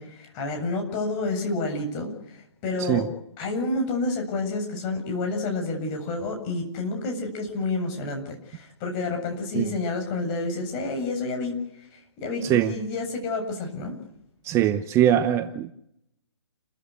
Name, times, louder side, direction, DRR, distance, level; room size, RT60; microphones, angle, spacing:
voice 1, 0.0-3.1 3.4-14.0, left 2 dB, 30° left, 7.8 m, -29 dB
voice 2, 14.4-15.7, right 11 dB, 15° right, 0.9 m, -21 dB
30.0 x 14.5 x 8.5 m
hypercardioid pair, 145°, 15 cm